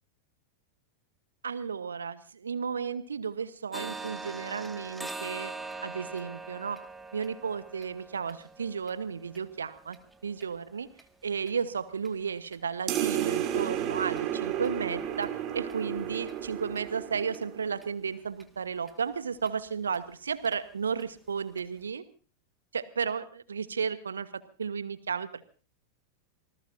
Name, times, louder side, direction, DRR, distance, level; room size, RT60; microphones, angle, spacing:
voice 1, 1.4-5.5 5.8-6.8 7.1-10.0 10.2-10.9 11.2-22.0 22.7-24.3 24.6-25.5, right 6 dB, 70° right, 14 dB, 1.2 m, -33 dB
sound 1, 3.7-11.5 12.0-12.1 12.5-12.7 13.1-13.2 13.6-13.7 14.2-14.3 14.6-14.7 15.2-15.3 15.7-15.8 16.3-16.4 16.8-16.9 17.3-17.4 17.8-17.9 18.4-18.5 18.9-19.0 19.5-19.6 19.9-20.0 20.4-20.6 21.0-21.1 21.6-21.7, right 3 dB, 5° right, 1.9 m, -43 dB
sound 2, 12.9-17.8, right 10 dB, 35° right, 3.0 m, -32 dB
26.5 x 19.5 x 2.7 m, 0.37 s
figure-of-eight pair, 90°, 0 cm